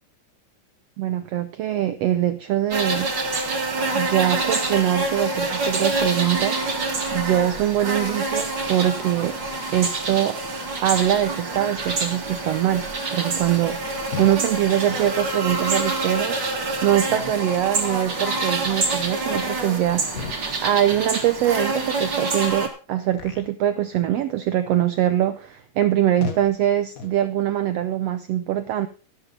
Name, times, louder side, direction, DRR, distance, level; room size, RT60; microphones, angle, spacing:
voice 1, 1.0-3.1 3.9-6.6 7.1-9.3 9.7-10.4 10.8-12.8 13.1-16.4 16.8-20.3 20.6-28.9, right 11 dB, 85° right, 11 dB, 1.4 m, -23 dB
sound 1, 2.7-22.7, right 3 dB, 35° right, 2.6 m, -26 dB
sound 2, 14.1-14.4 14.8-15.1 15.6-15.8 16.4-16.5 17.1-17.5 17.8-18.1 18.6-18.9 19.3-19.6 20.1-20.6 20.9-21.2 21.6-21.8 22.4-22.6 23.1-23.5 23.9-24.2 24.7-24.9 25.4-25.6 26.2-26.5 26.9-27.2, left 6 dB, 80° left, 0.7 m, -37 dB
13.5 x 12.0 x 3.9 m, 0.36 s
omnidirectional pair, 3.7 m